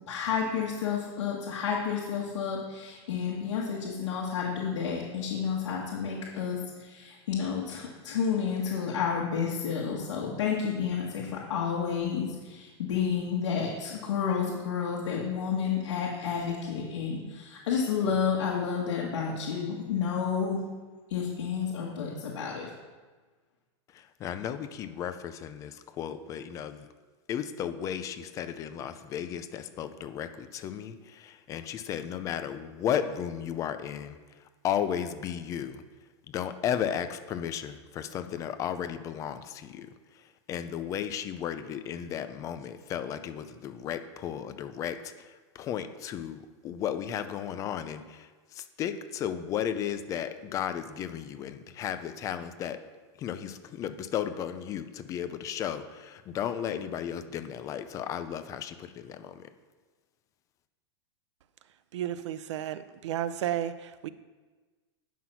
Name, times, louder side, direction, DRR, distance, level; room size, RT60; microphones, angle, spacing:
voice 1, 0.1-20.6 21.1-22.7, left 7 dB, 75° left, -4 dB, 1.9 m, -30 dB
voice 2, 23.9-26.9 27.3-34.2 34.6-35.8 36.3-52.8 53.2-59.5, left 9 dB, 20° left, 10 dB, 0.5 m, -34 dB
voice 3, 61.9-64.1, right 11 dB, 75° right, 14 dB, 0.6 m, -33 dB
9.3 x 6.1 x 5.7 m, 1.3 s
supercardioid pair, 160°, 15 cm